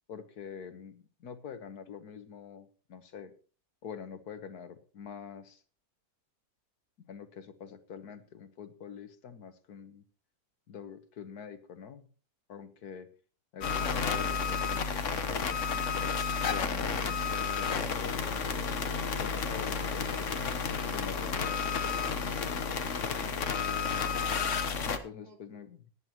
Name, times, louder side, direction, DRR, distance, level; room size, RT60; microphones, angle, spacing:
voice 1, 0.1-3.3 3.8-5.6 7.1-10.0 10.7-12.1 12.5-13.1 13.5-16.1 16.5-18.4 19.2-20.5 20.9-21.6 23.3-23.8 24.8-25.9, left 7 dB, 90° left, 10 dB, 1.8 m, -46 dB
sound 1, 13.6-25.0, left 5 dB, 55° left, 1.4 m, -31 dB
voice 2, 22.8-24.7 25.2-25.4, right 3 dB, 80° right, 3 dB, 3.0 m, -56 dB
18.0 x 10.5 x 3.0 m, 0.37 s
omnidirectional pair, 1.6 m